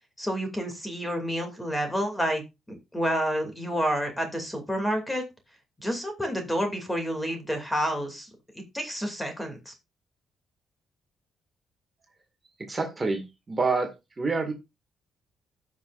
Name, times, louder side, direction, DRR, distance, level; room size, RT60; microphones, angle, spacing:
voice 1, 0.2-2.4 2.7-5.2 5.8-8.3 8.7-9.7, equal, 10° left, 4 dB, 2.6 m, -29 dB
voice 2, 12.6-13.9 14.2-14.5, right 4 dB, 25° right, 4 dB, 2.0 m, -27 dB
15.5 x 5.9 x 2.5 m, 0.24 s
cardioid pair, 110°, 0 cm